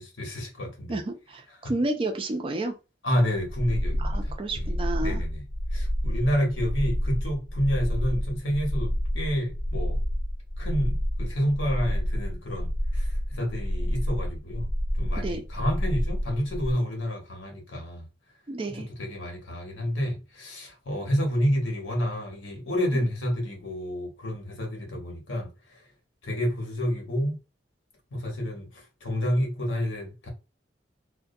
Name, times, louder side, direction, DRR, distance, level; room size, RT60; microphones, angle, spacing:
voice 1, 0.0-1.0 1.6-1.7 3.0-4.7 5.0-5.4 5.7-10.0 10.6-14.7 15.0-18.0 19.0-25.5 26.2-27.4 28.1-28.7 29.0-30.3, equal, 85° left, 0.9 m, -29 dB
voice 2, 0.9-2.7 4.0-5.2 15.1-15.4 18.5-18.9 22.9-23.1, right 2 dB, 30° right, 0.3 m, -31 dB
sound 1, 3.4-16.7, equal, 90° right, 0.7 m, -29 dB
2.3 x 2.1 x 2.5 m
head